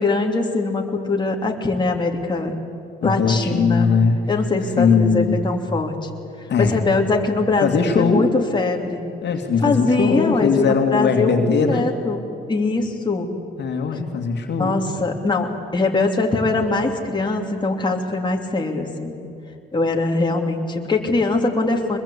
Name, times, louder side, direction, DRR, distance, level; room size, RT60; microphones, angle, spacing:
voice 1, 0.0-2.5 3.0-3.9 4.3-5.9 6.6-9.0 9.6-12.2 12.5-13.3 14.6-19.2 19.7-22.0, left 3 dB, 25° left, 1 dB, 3.0 m, -22 dB
voice 2, 3.0-4.2 4.8-5.5 6.5-6.8 7.6-8.3 9.2-11.9 13.6-14.8, left 5 dB, 60° left, 4 dB, 2.6 m, -19 dB
24.0 x 21.5 x 8.5 m, 2.8 s
cardioid pair, 90°, 20 cm